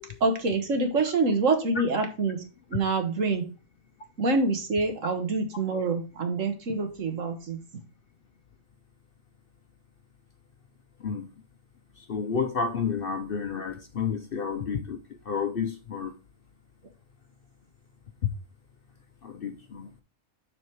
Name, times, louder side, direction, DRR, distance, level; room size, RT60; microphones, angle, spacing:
voice 1, 0.2-2.4 2.7-3.4 4.2-7.6, right 3 dB, 65° right, 1.7 m, -26 dB
voice 2, 12.0-15.0 15.3-16.1 18.2-18.3 19.2-19.9, left 6 dB, 55° left, 0.7 m, -30 dB
7.5 x 4.2 x 4.6 m
omnidirectional pair, 1.4 m